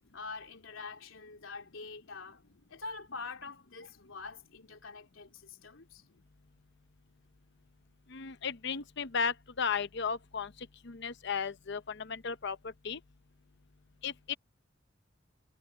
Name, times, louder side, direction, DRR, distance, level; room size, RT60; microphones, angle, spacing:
voice 1, 0.1-2.4 2.7-6.0, left 4 dB, 85° left, 3.2 m, -45 dB
voice 2, 8.1-10.5 10.8-13.0 14.0-14.3, left 6 dB, 60° left, 0.8 m, -35 dB
head